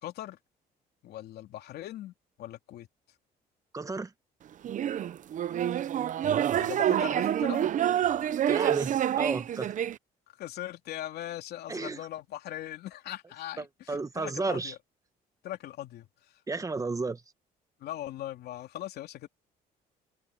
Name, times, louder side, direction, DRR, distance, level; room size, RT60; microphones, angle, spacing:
voice 1, 0.0-0.4 1.0-2.9 6.5-7.7 10.4-14.8 15.4-16.4 17.8-19.3, left 13 dB, 70° left, 2.9 m, -40 dB
voice 2, 3.7-4.1 8.5-9.7 11.7-12.0 13.6-14.7 16.5-17.2, right 3 dB, 20° right, 1.4 m, -33 dB
sound 1, 4.6-10.0, right 10 dB, 50° right, 0.8 m, -27 dB
cardioid pair, 110°, 17 cm